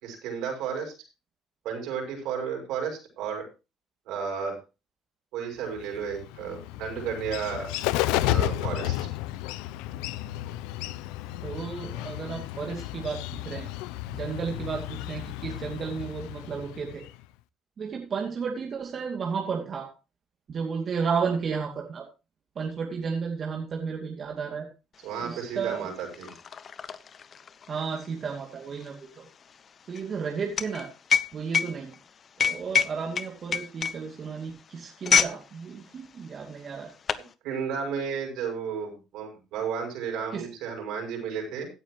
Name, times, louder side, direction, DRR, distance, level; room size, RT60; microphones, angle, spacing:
voice 1, 0.0-0.9 1.6-3.5 4.1-4.6 5.3-7.7 8.2-9.0 25.0-26.3 37.4-41.7, right 6 dB, 75° right, 2 dB, 6.1 m, -33 dB
Bird, 5.8-17.2, left 15 dB, 85° left, 0.5 m, -32 dB
voice 2, 11.4-13.7 14.1-17.0 17.8-19.9 20.5-22.0 22.6-24.7 25.2-25.9 27.7-29.2 29.9-30.9 31.3-31.9 32.4-36.9 40.3-40.5, right 5 dB, 45° right, 1 dB, 2.5 m, -33 dB
sound 1, 25.1-25.2 25.5-35.4 35.7-36.0 36.6-37.3, left 6 dB, 45° left, 0.9 m, -27 dB
16.5 x 9.2 x 3.1 m, 0.30 s
supercardioid pair, 85°, 0 cm